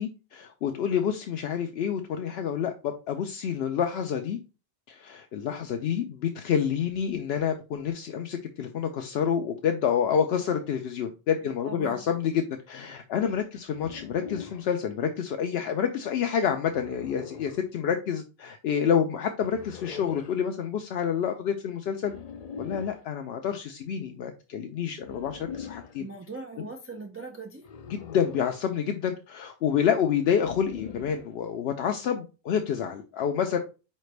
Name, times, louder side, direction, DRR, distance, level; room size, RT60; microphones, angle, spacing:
voice 1, 0.0-4.4 4.9-22.1 22.6-26.1 27.9-33.6, left 8 dB, 75° left, 5 dB, 0.8 m, -28 dB
voice 2, 11.4-12.0 26.0-27.7, right 3 dB, 20° right, 2 dB, 0.4 m, -40 dB
sound 1, 13.7-14.7 16.6-17.6 19.4-20.4 22.0-23.0 25.0-26.0 27.6-28.7 30.3-31.3, left 6 dB, 55° left, 0.5 m, -42 dB
4.9 x 3.2 x 3.2 m, 0.30 s
omnidirectional pair, 1.0 m